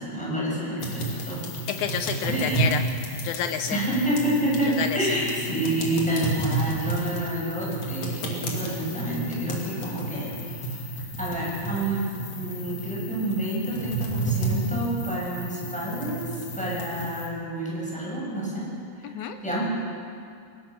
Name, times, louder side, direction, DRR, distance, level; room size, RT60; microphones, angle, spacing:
voice 1, 0.0-1.4 2.3-2.6 3.7-10.8 11.2-12.0 12.3-18.7 19.0-19.1 19.4-19.6, right 1 dB, ahead, -5 dB, 6.6 m, -28 dB
sound 1, 0.8-17.3, right 2 dB, 45° left, 3.5 m, -31 dB
voice 2, 1.7-2.8 3.2-3.8 4.8-5.0 19.0-19.4, left 9 dB, 85° left, 8 dB, 1.7 m, -28 dB
23.0 x 20.0 x 6.3 m, 2.3 s
omnidirectional pair, 4.3 m